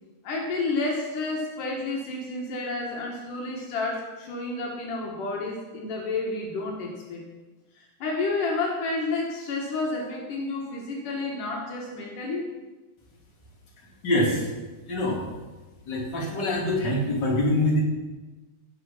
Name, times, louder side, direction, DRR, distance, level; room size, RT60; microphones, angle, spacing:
voice 1, 0.2-7.3 8.0-12.5, left 3 dB, 80° left, -1 dB, 3.4 m, -30 dB
voice 2, 14.0-14.4 14.9-15.2 15.9-17.8, left 1 dB, 35° left, -3 dB, 3.4 m, -24 dB
16.5 x 7.5 x 5.8 m, 1.2 s
omnidirectional pair, 3.7 m